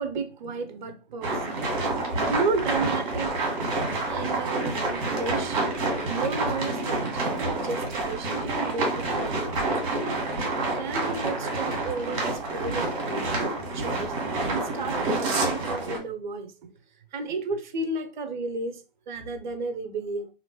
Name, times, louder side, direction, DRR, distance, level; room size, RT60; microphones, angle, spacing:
voice 1, 0.0-1.6 2.1-3.3 4.0-5.7 6.0-7.1 7.5-9.7 10.4-13.4 13.7-16.7 17.1-20.3, right 3 dB, 50° right, 0.6 m, -33 dB
sound 1, 1.2-16.0, right 2 dB, 35° right, 1.3 m, -28 dB
2.9 x 2.6 x 2.9 m
figure-of-eight pair, 130°, 30 cm